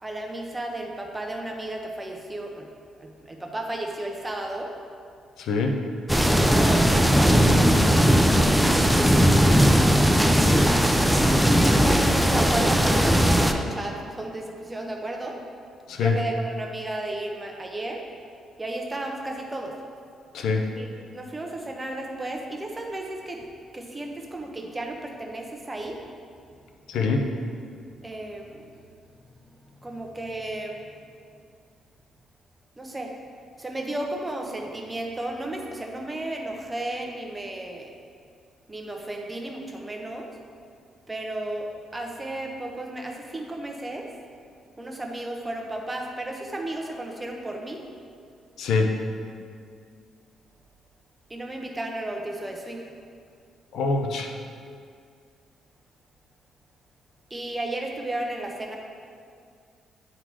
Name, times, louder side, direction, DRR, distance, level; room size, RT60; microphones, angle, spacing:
voice 1, 0.0-2.7 3.0-4.7 6.1-7.3 9.0-9.9 10.5-15.4 16.0-18.0 18.6-19.7 20.8-23.4 23.7-26.0 28.0-28.7 29.8-30.9 32.8-33.1 33.6-37.9 38.7-40.3 41.1-44.1 44.8-47.8 51.3-52.8 57.3-58.8, right 1 dB, 15° right, 1 dB, 1.0 m, -33 dB
voice 2, 5.4-5.8 15.9-16.2 20.3-20.7 26.9-27.3 48.6-48.9 53.7-54.3, left 4 dB, 80° left, 3 dB, 0.7 m, -24 dB
sound 1, 6.1-13.5, equal, ahead, 0.5 m, -18 dB
9.6 x 3.8 x 4.7 m, 2.3 s
cardioid pair, 90°, 0 cm